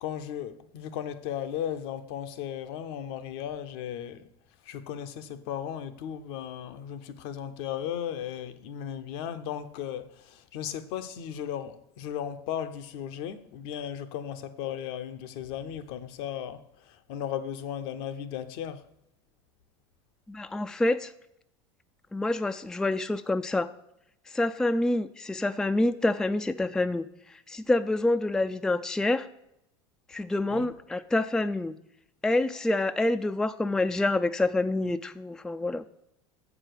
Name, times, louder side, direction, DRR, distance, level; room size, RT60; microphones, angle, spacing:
voice 1, 0.0-4.2 4.6-18.9 30.5-30.7, left 9 dB, 65° left, 0.7 m, -36 dB
voice 2, 20.3-21.1 22.1-23.7 24.3-27.1 27.5-29.3 30.1-31.7 32.2-35.9, left 2 dB, 5° left, 0.3 m, -27 dB
7.4 x 4.9 x 6.4 m
hypercardioid pair, 85°, 14 cm